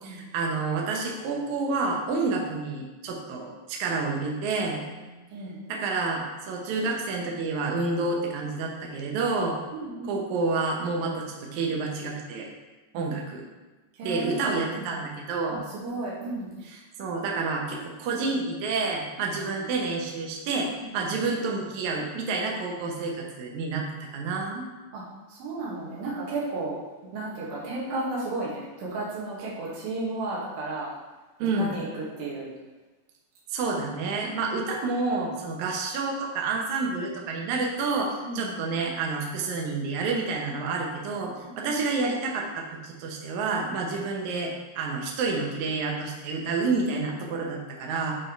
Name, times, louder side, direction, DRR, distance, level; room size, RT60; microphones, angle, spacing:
voice 1, 0.0-4.8 5.7-9.6 10.0-12.5 12.9-13.4 14.0-15.6 17.0-24.7 31.4-31.7 33.5-48.1, right 3 dB, 70° right, 0 dB, 2.1 m, -29 dB
voice 2, 9.7-10.2 12.9-13.1 14.0-14.8 15.5-16.5 19.4-19.5 20.8-20.9 24.9-25.0 25.3-26.8 27.1-30.9 31.6-31.8 32.2-32.5 38.2-38.6 41.4-41.7, right 2 dB, 85° right, -6 dB, 3.4 m, -33 dB
8.9 x 3.5 x 4.5 m, 1.2 s
omnidirectional pair, 4.0 m